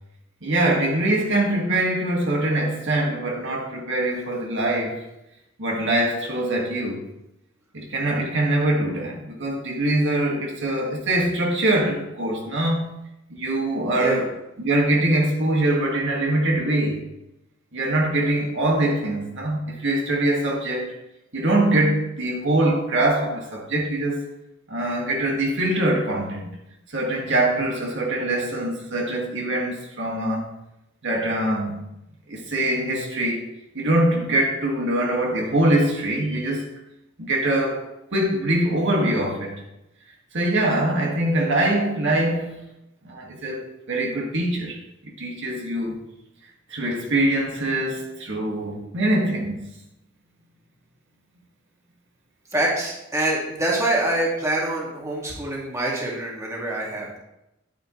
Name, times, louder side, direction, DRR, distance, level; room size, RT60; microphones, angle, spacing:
voice 1, 0.4-5.0 5.6-7.0 7.7-13.0 13.3-14.3 14.6-17.0 17.7-20.9 21.3-24.2 24.7-26.5 26.9-30.5 31.0-31.9 32.3-33.5 33.7-36.7 37.3-39.6 40.3-42.6 43.0-44.8 45.2-46.0 46.7-49.6, right 1 dB, 60° right, -1 dB, 2.0 m, -23 dB
voice 2, 52.5-57.2, right 1 dB, 15° right, -3 dB, 2.1 m, -25 dB
10.0 x 9.3 x 3.2 m, 0.88 s
head